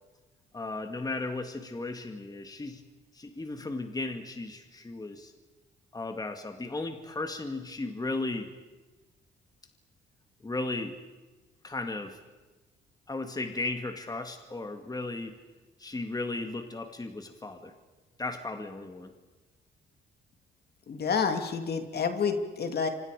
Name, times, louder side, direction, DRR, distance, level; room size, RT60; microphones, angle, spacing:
voice 1, 0.5-2.8 3.1-5.3 5.9-8.5 10.4-11.0 11.6-12.2 13.1-15.3 15.8-17.7 18.2-19.1, left 2 dB, 20° left, 6 dB, 2.2 m, -35 dB
voice 2, 20.9-22.9, left 5 dB, 55° left, 6 dB, 2.7 m, -29 dB
29.0 x 25.5 x 5.1 m, 1.2 s
cardioid pair, 90°, 20 cm